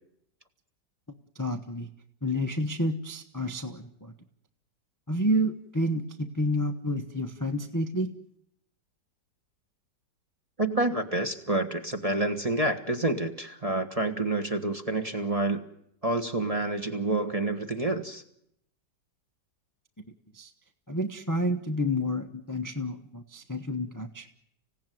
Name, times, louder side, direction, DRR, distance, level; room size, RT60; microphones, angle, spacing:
voice 1, 1.3-1.9 2.2-4.1 5.1-8.1 20.3-20.5 20.9-24.3, equal, 15° left, 6 dB, 0.8 m, -29 dB
voice 2, 10.6-15.6 16.0-18.2, right 2 dB, 20° right, 7 dB, 1.3 m, -28 dB
26.0 x 16.5 x 9.3 m, 0.78 s
omnidirectional pair, 2.0 m